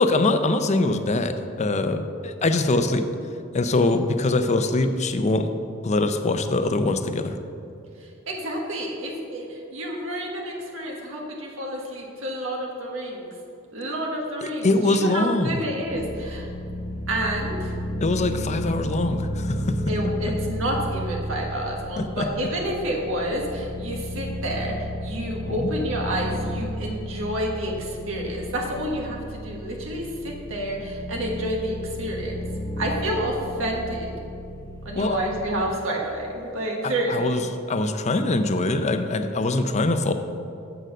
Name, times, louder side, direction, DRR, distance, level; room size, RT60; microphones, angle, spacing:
voice 1, 0.0-3.0 3.5-5.5 5.8-7.4 14.6-15.6 18.0-19.7 22.0-22.2 25.4-25.7 35.0-35.2 36.8-40.1, left 2 dB, 35° left, 8 dB, 0.5 m, -23 dB
voice 2, 8.0-13.3 13.7-16.5 17.1-17.7 19.9-32.4 32.8-34.1 34.8-37.4, right 1 dB, 70° right, -1 dB, 1.4 m, -29 dB
sound 1, 15.9-35.6, equal, 15° left, 1.0 m, -33 dB
7.8 x 6.6 x 6.4 m, 2.6 s
head